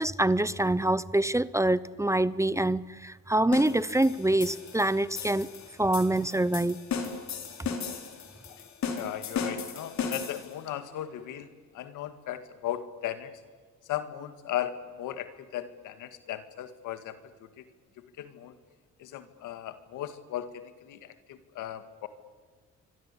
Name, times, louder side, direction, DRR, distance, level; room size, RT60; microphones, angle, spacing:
voice 1, 0.0-5.5 5.8-6.8, right 1 dB, 10° right, 18 dB, 0.7 m, -25 dB
sound 1, 3.5-10.6, left 6 dB, 65° left, 4.3 m, -36 dB
voice 2, 8.9-11.5 11.7-13.4 13.9-17.2 17.6-17.7 18.0-18.6 19.0-22.1, left 11 dB, 90° left, 10 dB, 2.0 m, -37 dB
27.0 x 24.5 x 8.5 m, 1.5 s
cardioid pair, 90°, 30 cm